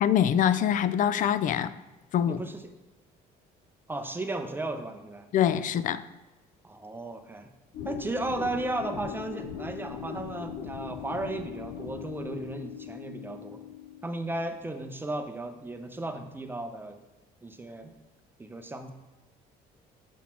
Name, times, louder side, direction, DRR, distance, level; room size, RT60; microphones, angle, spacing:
voice 1, 0.0-1.7 2.1-2.4 5.3-6.0, left 9 dB, 50° left, 0.4 m, -24 dB
voice 2, 2.3-2.6 3.9-5.3 6.6-7.5 7.9-13.6 14.0-17.0 17.4-17.9 18.4-18.9, right 2 dB, 10° right, 0.6 m, -35 dB
sound 1, 7.7-14.3, left 8 dB, 75° left, 0.7 m, -40 dB
7.2 x 4.1 x 4.3 m
cardioid pair, 110°, 17 cm